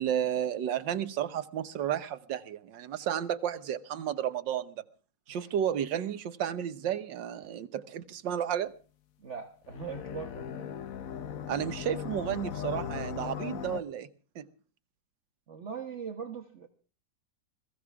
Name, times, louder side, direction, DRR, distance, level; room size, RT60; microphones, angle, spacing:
voice 1, 0.0-4.8 5.3-8.7 11.5-14.1 14.3-14.5, right 10 dB, 85° right, 1.7 m, -32 dB
voice 2, 9.2-10.8 15.5-16.7, right 6 dB, 40° right, 1.5 m, -41 dB
sound 1, 9.6-13.8, left 8 dB, 55° left, 1.2 m, -38 dB
22.0 x 16.0 x 3.5 m
omnidirectional pair, 1.9 m